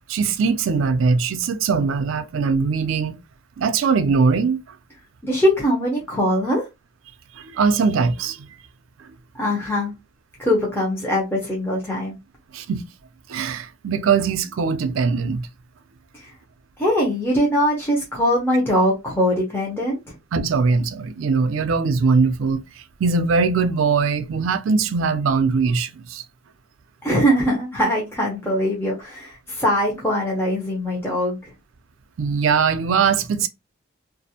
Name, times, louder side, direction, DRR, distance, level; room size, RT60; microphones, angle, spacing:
voice 1, 0.1-3.2 3.6-4.6 7.4-8.5 12.5-12.8 13.3-15.5 20.3-22.6 23.0-26.2 32.2-33.5, right 5 dB, 85° right, 0.4 m, -21 dB
voice 2, 5.2-6.7 9.3-9.9 10.4-12.2 16.1-16.3 16.8-20.1 27.0-31.5, equal, 10° left, 0.6 m, -22 dB
2.5 x 2.0 x 2.7 m
head